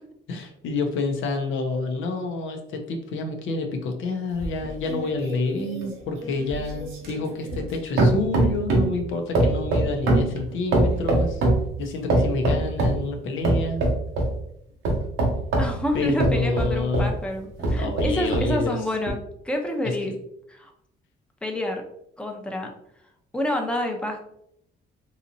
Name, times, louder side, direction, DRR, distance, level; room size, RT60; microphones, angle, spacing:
voice 1, 0.3-11.4 11.8-13.8 15.9-17.1 17.8-18.8, left 3 dB, 80° left, 4 dB, 0.7 m, -28 dB
sound 1, 4.4-7.7 8.0-9.0 9.3-11.7 12.1-13.0 13.4-14.3 14.8-17.1 17.6-18.5 19.1-19.2, right 2 dB, 90° right, 1.0 m, -23 dB
voice 2, 15.6-20.1 20.5-20.7 21.4-21.8 22.2-22.7 23.3-24.2, left 1 dB, 5° left, 2 dB, 0.6 m, -28 dB
3.9 x 2.8 x 2.7 m, 0.75 s
cardioid pair, 90°, 20 cm